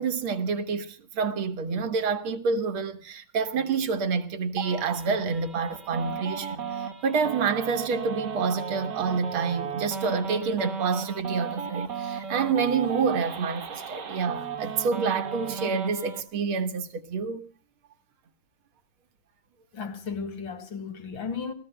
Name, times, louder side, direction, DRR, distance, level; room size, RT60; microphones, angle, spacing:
voice 1, 0.0-6.6 7.0-17.4, right 5 dB, 75° right, 2.3 m, -28 dB
sound 1, 4.6-16.2, right 6 dB, 55° right, 1.8 m, -35 dB
voice 2, 19.7-21.5, left 5 dB, 65° left, 2.9 m, -34 dB
29.5 x 16.0 x 2.2 m
omnidirectional pair, 2.3 m